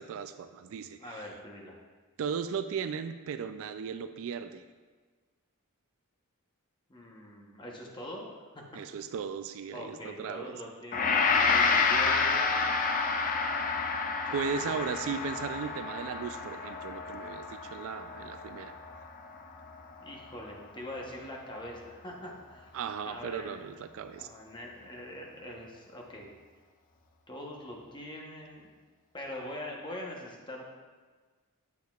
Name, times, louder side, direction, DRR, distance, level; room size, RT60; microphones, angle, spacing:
voice 1, 0.0-1.2 2.2-4.6 8.7-10.6 14.3-18.7 22.7-24.3, right 6 dB, 60° right, 10 dB, 0.3 m, -36 dB
voice 2, 1.0-1.8 6.9-8.2 9.7-12.5 14.2-14.7 20.0-22.7 23.0-23.6 24.2-26.3 27.3-28.7 29.1-30.6, left 1 dB, 20° left, -1 dB, 0.9 m, -43 dB
Gong, 10.9-20.1, left 4 dB, 35° left, 0.4 m, -29 dB
8.2 x 6.4 x 2.3 m, 1.4 s
head